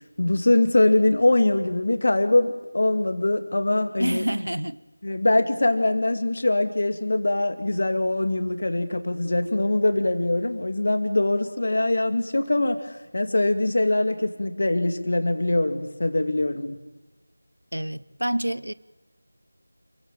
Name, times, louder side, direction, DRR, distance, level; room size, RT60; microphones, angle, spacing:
voice 1, 0.2-4.2 5.0-16.8, left 2 dB, 50° left, 2.3 m, -23 dB
voice 2, 4.0-4.8 17.7-18.7, right 1 dB, 80° right, 0.8 m, -27 dB
28.0 x 15.5 x 9.0 m
figure-of-eight pair, 170°, 0 cm